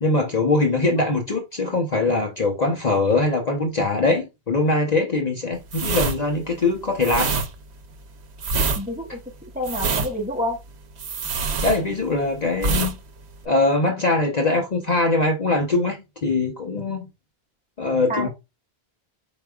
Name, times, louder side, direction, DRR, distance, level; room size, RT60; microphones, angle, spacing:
voice 1, 0.0-7.4 11.6-13.0 13.4-17.1 17.8-18.3, left 2 dB, 45° left, 0.8 m, -22 dB
sound 1, 5.7-12.2 12.6-13.0 13.2-13.4, right 4 dB, 80° right, 1.0 m, -25 dB
voice 2, 8.7-10.6 18.1-18.3, left 1 dB, 10° right, 1.3 m, -28 dB
4.9 x 4.7 x 2.3 m
omnidirectional pair, 1.1 m